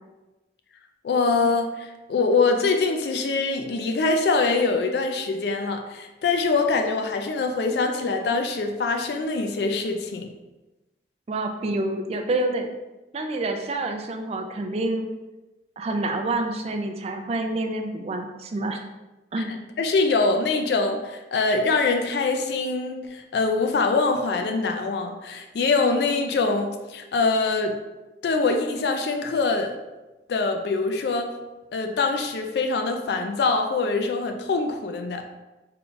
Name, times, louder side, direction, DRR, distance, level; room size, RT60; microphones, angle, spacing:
voice 1, 1.0-10.3 19.4-27.8 28.2-29.8 30.3-31.3 31.7-35.2, left 3 dB, 65° left, 5 dB, 0.3 m, -24 dB
voice 2, 11.3-12.7 13.1-15.1 15.8-18.8 19.3-19.5, right 2 dB, 35° right, 4 dB, 0.3 m, -27 dB
3.7 x 2.2 x 3.8 m, 1.1 s
head